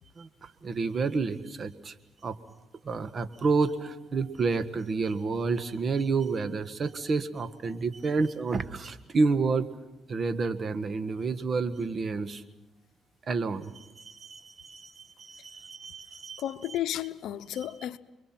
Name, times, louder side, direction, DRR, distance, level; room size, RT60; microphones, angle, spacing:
voice 1, 0.2-1.9 2.2-2.4 2.8-9.7 10.1-12.4 13.3-16.4, right 4 dB, 45° right, 1.5 m, -29 dB
voice 2, 16.4-18.0, left 12 dB, 80° left, 0.8 m, -33 dB
29.5 x 23.0 x 6.0 m
cardioid pair, 90°, 0 cm